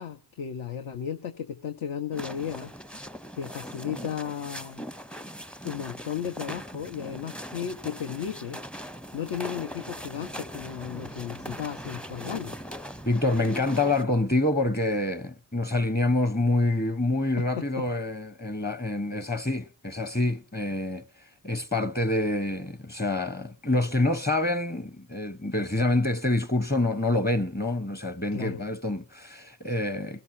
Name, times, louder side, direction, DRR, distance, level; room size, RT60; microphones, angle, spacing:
voice 1, 0.0-2.7 3.4-4.8 5.6-8.6 9.1-12.5 17.4-17.5 28.3-28.6, left 8 dB, 65° left, 1.2 m, -34 dB
sound 1, 2.1-14.0, equal, ahead, 0.6 m, -40 dB
voice 2, 13.1-21.0 21.4-30.2, left 2 dB, 20° left, 1.0 m, -26 dB
20.5 x 12.0 x 2.8 m
supercardioid pair, 50°, 50 cm